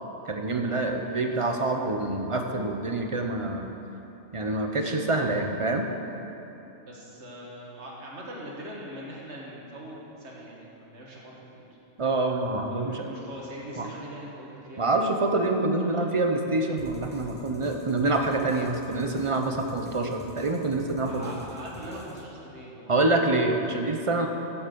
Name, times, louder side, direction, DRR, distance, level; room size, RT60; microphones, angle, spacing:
voice 1, 0.2-3.7 4.3-5.9 12.0-13.1 13.8-13.9 14.8-21.2 22.9-24.3, right 2 dB, 30° right, 4 dB, 0.7 m, -26 dB
voice 2, 6.8-11.7 12.7-15.0 15.8-16.2 21.0-23.2, right 1 dB, 60° right, -3 dB, 2.1 m, -42 dB
sound 1, 16.8-22.2, left 1 dB, 10° left, 0.8 m, -47 dB
14.5 x 7.0 x 5.3 m, 3.0 s
omnidirectional pair, 1.3 m